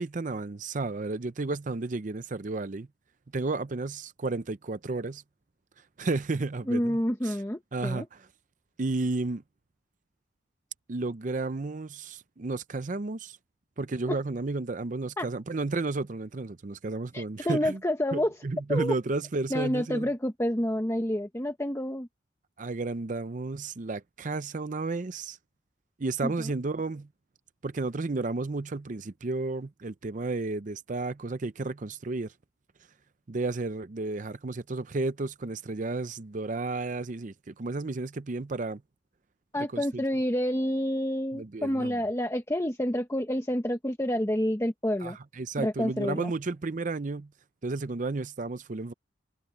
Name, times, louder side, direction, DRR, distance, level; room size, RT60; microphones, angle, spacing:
voice 1, 0.0-2.9 3.3-5.2 6.0-7.4 7.7-8.3 8.8-9.4 10.9-13.4 13.8-17.8 18.1-20.1 22.6-25.4 26.0-27.1 27.6-32.3 33.3-38.8 39.7-40.0 41.3-42.0 45.0-47.3 47.6-48.9, right 3 dB, 40° right, 0.5 m, -32 dB
voice 2, 6.7-8.1 14.1-14.2 15.2-15.3 17.1-18.3 18.7-18.9 19.5-22.1 26.2-26.5 39.5-45.2 45.6-46.3, equal, 15° left, 0.9 m, -28 dB
head